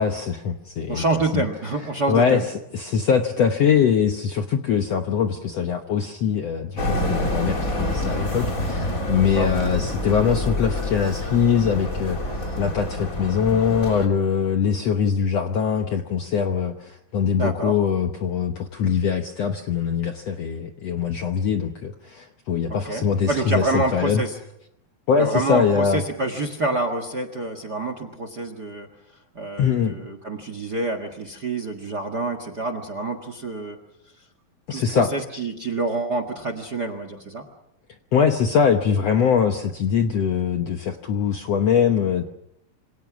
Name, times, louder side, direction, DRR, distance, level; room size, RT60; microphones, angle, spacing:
voice 1, 0.0-1.4 2.1-2.4 2.7-24.2 25.1-26.0 29.6-29.9 34.7-35.1 38.1-42.3, left 7 dB, 65° left, 5 dB, 1.6 m, -22 dB
voice 2, 0.9-2.4 9.2-9.5 17.4-17.7 22.7-24.4 25.2-28.9 29.3-33.8 34.7-37.4, right 2 dB, 40° right, 10 dB, 1.5 m, -27 dB
sound 1, 6.8-14.1, left 1 dB, 25° left, 3.4 m, -27 dB
27.0 x 26.0 x 6.2 m, 0.80 s
omnidirectional pair, 4.2 m